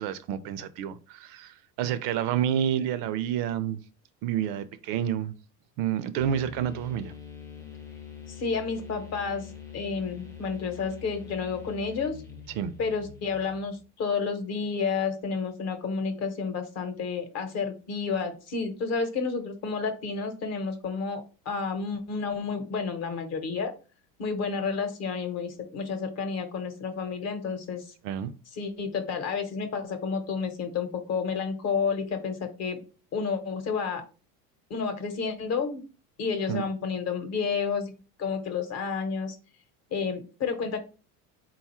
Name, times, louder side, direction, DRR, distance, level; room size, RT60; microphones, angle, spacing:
voice 1, 0.0-3.8 4.2-5.3 5.8-7.1 12.6-12.7 28.0-28.3 36.5-36.6, right 9 dB, 60° right, 0.5 m, -29 dB
Bass E-string Bend. (simulated feedback), 6.2-13.9, left 7 dB, 5° left, 0.5 m, -44 dB
voice 2, 8.3-12.2 12.8-23.7 24.2-27.9 28.6-32.8 33.1-34.0 34.7-35.8 36.2-37.9 38.2-39.4 39.9-40.8, left 5 dB, 40° left, 0.9 m, -30 dB
3.9 x 2.3 x 4.2 m
cardioid pair, 135°, 40 cm